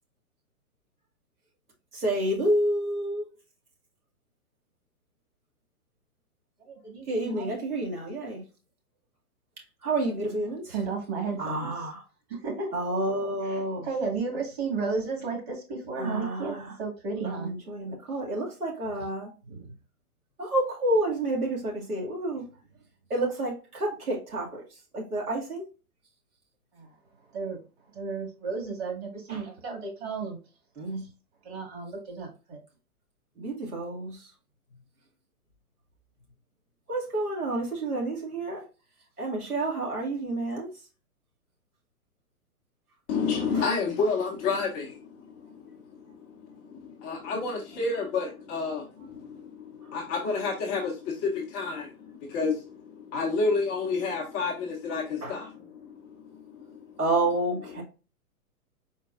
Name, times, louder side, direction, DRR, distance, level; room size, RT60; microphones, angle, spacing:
voice 1, 2.0-3.2 7.1-8.4 9.8-10.8 11.4-12.0 12.7-13.9 16.0-16.7 17.2-19.3 20.4-22.5 23.1-25.6 29.3-29.5 30.8-31.0 33.4-34.3 36.9-38.6 39.2-40.7 43.5-43.6 55.2-55.4 57.0-57.8, right 1 dB, 80° right, 2.1 m, -29 dB
voice 2, 6.6-7.6 10.7-11.7 12.3-12.7 13.5-17.5 19.5-19.7 26.7-26.9 27.3-27.6 27.9-30.4 31.4-32.6, right 4 dB, 45° right, 2.1 m, -33 dB
voice 3, 43.1-45.2 46.1-55.5 56.3-56.8, left 4 dB, 15° left, 0.6 m, -30 dB
4.5 x 4.3 x 2.4 m
figure-of-eight pair, 115°, 44 cm